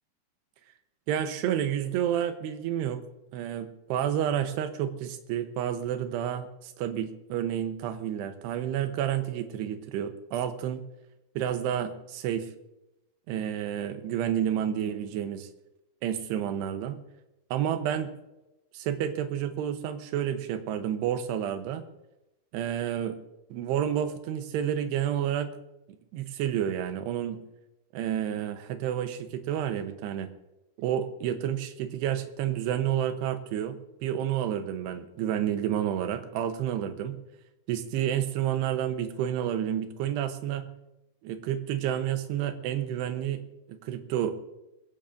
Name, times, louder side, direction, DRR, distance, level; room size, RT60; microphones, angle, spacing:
voice 1, 1.1-3.0 3.3-10.8 11.4-12.5 13.3-15.5 16.0-17.0 17.5-18.1 18.7-21.8 22.5-23.2 23.5-25.5 26.1-27.4 27.9-30.3 30.8-37.2 37.7-40.7 41.2-43.4 43.7-44.3, right 10 dB, 80° right, 8 dB, 3.0 m, -30 dB
21.5 x 16.5 x 2.6 m, 0.94 s
omnidirectional pair, 4.9 m